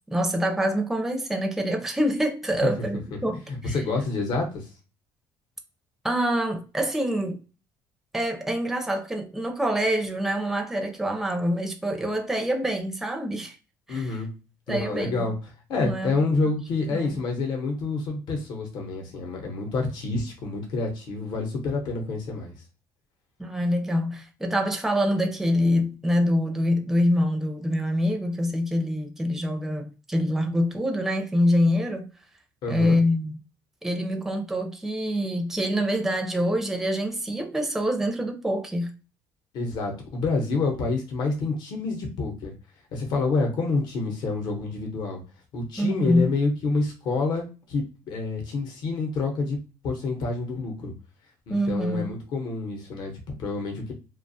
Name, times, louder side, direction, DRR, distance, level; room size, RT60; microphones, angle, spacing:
voice 1, 0.1-3.8 6.0-7.4 8.1-13.6 13.9-14.2 14.7-15.3 15.8-16.1 16.9-17.1 23.4-32.1 32.7-33.3 33.8-38.9 45.8-46.2 51.5-52.1, equal, 5° right, 0.4 m, -25 dB
voice 2, 3.5-4.7 13.9-14.3 14.7-15.3 15.7-22.5 32.6-33.0 39.5-42.5 42.9-45.2 45.5-49.6 49.8-50.9 51.5-53.9, left 3 dB, 65° left, 0.8 m, -28 dB
2.4 x 2.2 x 2.6 m
cardioid pair, 130°, 8 cm